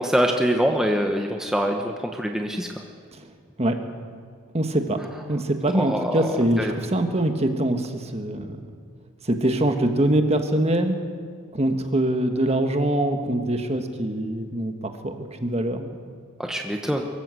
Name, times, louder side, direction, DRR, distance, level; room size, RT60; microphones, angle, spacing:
voice 1, 0.0-2.7 5.7-6.2 6.6-6.7 16.5-17.0, equal, 5° right, 2 dB, 1.0 m, -24 dB
voice 2, 4.5-5.0 5.3-8.7 9.2-11.0 11.5-16.0, right 1 dB, 30° right, 6 dB, 1.5 m, -23 dB
23.5 x 14.0 x 7.8 m, 2.1 s
head